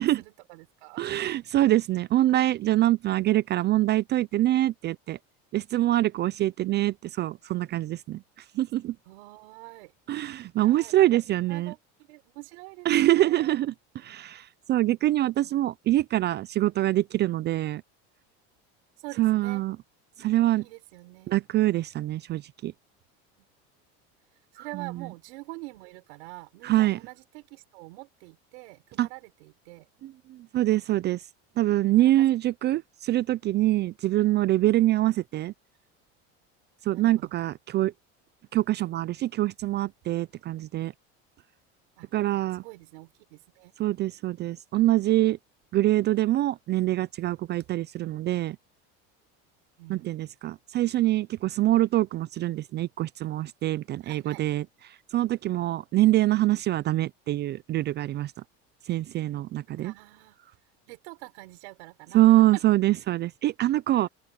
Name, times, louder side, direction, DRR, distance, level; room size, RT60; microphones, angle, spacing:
voice 1, 0.0-1.1 9.0-9.9 10.6-11.8 12.1-13.6 15.4-15.6 19.0-19.6 20.6-21.3 24.5-29.9 32.0-32.4 36.9-37.4 42.0-43.7 49.8-50.1 54.0-54.5 59.8-60.6 60.9-62.6 63.9-64.1, right 24 dB, 85° right, 5.5 m, -45 dB
voice 2, 1.0-5.2 5.5-8.2 8.6-8.9 10.1-11.7 12.9-13.7 14.1-14.4 14.7-17.8 19.2-19.7 20.2-20.6 21.3-22.7 26.7-27.0 29.0-29.1 30.5-31.2 31.6-35.5 36.9-37.9 38.5-40.9 42.1-42.6 43.8-45.4 45.7-48.5 49.9-54.6 55.1-58.3 58.9-59.9 62.1-64.1, right 15 dB, 35° right, 0.4 m, -24 dB
open air
supercardioid pair, 130°, 32 cm